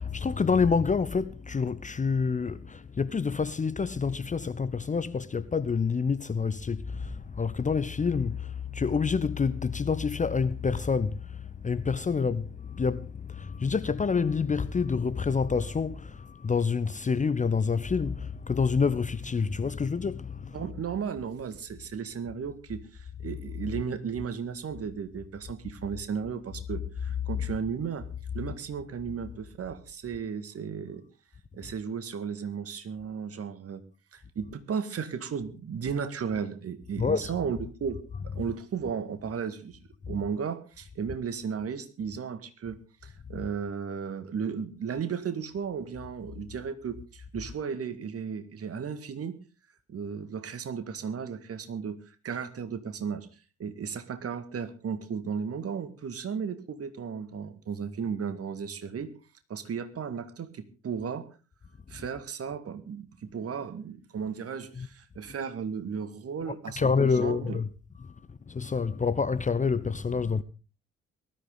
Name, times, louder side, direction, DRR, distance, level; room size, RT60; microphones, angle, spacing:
voice 1, 0.0-20.7 23.3-23.4 27.3-27.5 31.6-31.7 34.4-34.5 37.0-37.4 38.1-38.4 40.1-40.2 43.3-43.5 64.7-64.9 66.5-67.7 68.0-68.1 68.5-70.4, left 5 dB, 20° left, 0.8 m, -28 dB
voice 2, 20.5-28.1 28.3-31.0 31.5-33.8 34.1-38.0 38.2-39.8 40.1-49.4 49.9-53.3 53.6-59.1 59.5-61.2 61.9-66.9 67.2-67.6, right 6 dB, 45° right, 1.9 m, -35 dB
19.5 x 13.5 x 3.8 m
figure-of-eight pair, 40°, 33 cm